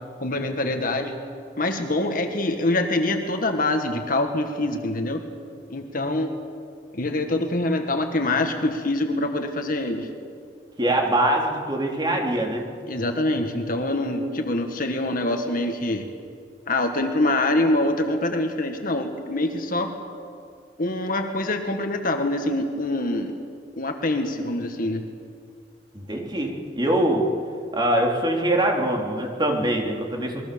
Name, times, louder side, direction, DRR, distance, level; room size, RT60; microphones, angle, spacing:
voice 1, 0.2-1.1 1.6-5.2 5.7-6.3 6.9-10.1 12.9-16.1 16.7-19.9 20.8-23.4 23.8-25.0, left 2 dB, 55° left, 5 dB, 1.8 m, -25 dB
voice 2, 10.8-12.7 25.9-27.3 27.7-30.4, right 1 dB, 25° right, 0 dB, 3.7 m, -23 dB
27.5 x 21.5 x 7.0 m, 2.3 s
head